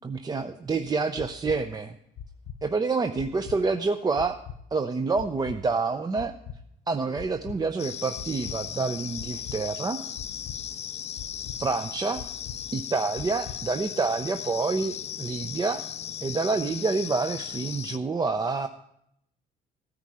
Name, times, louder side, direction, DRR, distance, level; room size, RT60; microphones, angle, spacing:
voice 1, 0.0-2.0 2.6-4.4 4.7-6.3 6.9-10.0 11.6-12.2 12.7-15.8 16.2-18.7, right 4 dB, 25° right, 8 dB, 0.6 m, -28 dB
sound 1, 1.2-1.6 2.2-2.6 3.2-3.6 4.2-4.6 5.2-5.6 6.2-6.6 7.2-7.6 8.2-8.6 9.2-9.6 10.2-10.6 11.2-11.6 12.2-12.6 13.2-13.6, left 8 dB, 70° left, 1.0 m, -40 dB
sound 2, 7.8-18.0, left 9 dB, 40° left, 0.5 m, -37 dB
15.0 x 9.7 x 4.9 m, 0.75 s
cardioid pair, 110°, 17 cm